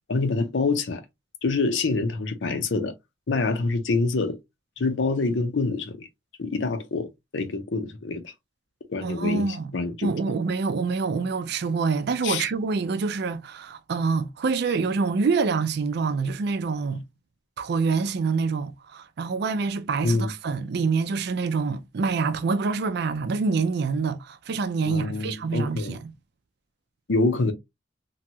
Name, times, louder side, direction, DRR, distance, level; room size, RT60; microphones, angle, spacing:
voice 1, 0.1-1.0 1.4-2.9 3.3-4.4 4.8-6.1 6.4-8.3 8.9-9.5 9.7-10.1 12.2-12.5 20.0-20.3 24.9-26.0 27.1-27.5, left 3 dB, 85° left, 0.6 m, -26 dB
voice 2, 9.0-9.7 10.0-17.0 17.6-26.1, right 4 dB, 65° right, 0.4 m, -26 dB
2.8 x 2.3 x 2.8 m
head